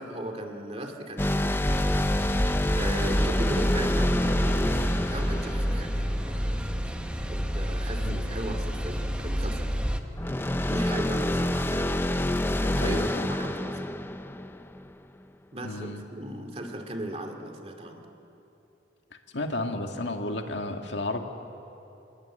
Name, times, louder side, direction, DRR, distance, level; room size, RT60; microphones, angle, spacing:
voice 1, 0.0-1.6 2.7-6.7 7.3-9.8 10.7-11.9 12.6-13.8 15.5-18.1, right 1 dB, 30° right, 4 dB, 2.4 m, -37 dB
sound 1, 1.2-6.7 10.2-14.9, left 1 dB, 10° left, 0.6 m, -27 dB
sound 2, 1.7-10.0, equal, 5° right, 1.1 m, -29 dB
voice 2, 12.8-13.2 15.6-16.0 19.3-21.2, left 2 dB, 70° left, 4 dB, 1.9 m, -32 dB
29.0 x 20.0 x 8.9 m, 2.9 s
head